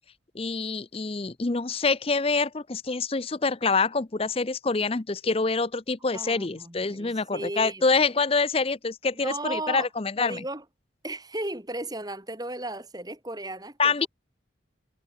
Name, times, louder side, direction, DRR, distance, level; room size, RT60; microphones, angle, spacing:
voice 1, 0.3-10.4 13.8-14.1, left 4 dB, 30° left, 0.6 m, -26 dB
voice 2, 6.1-7.9 9.2-9.9 10.2-10.6 11.0-14.1, right 2 dB, 20° right, 4.2 m, -35 dB
head